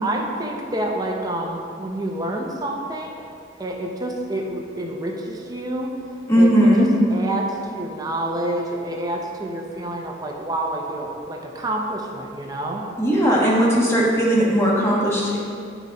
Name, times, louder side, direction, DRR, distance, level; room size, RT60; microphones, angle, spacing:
voice 1, 0.0-3.2 3.6-6.0 6.4-12.9, right 1 dB, 20° right, 0 dB, 0.6 m, -28 dB
voice 2, 6.3-6.9 13.0-15.4, equal, 15° left, -5 dB, 1.3 m, -17 dB
9.4 x 4.0 x 4.7 m, 2.4 s
head